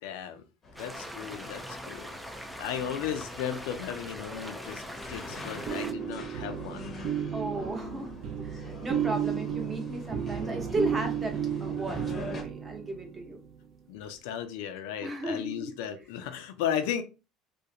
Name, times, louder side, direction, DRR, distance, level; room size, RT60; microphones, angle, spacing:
voice 1, 0.0-0.4 0.8-2.1 2.6-4.8 5.1-6.9 13.9-17.0, left 9 dB, 85° left, 0.4 m, -35 dB
sound 1, 0.6-12.4, left 2 dB, 30° left, 0.7 m, -45 dB
sound 2, 0.8-5.9, equal, 5° right, 0.3 m, -42 dB
sound 3, 5.3-13.3, right 9 dB, 50° right, 0.5 m, -33 dB
voice 2, 7.3-13.4 15.0-15.7, right 2 dB, 20° right, 0.9 m, -35 dB
2.4 x 2.1 x 2.7 m
supercardioid pair, 115°, 0 cm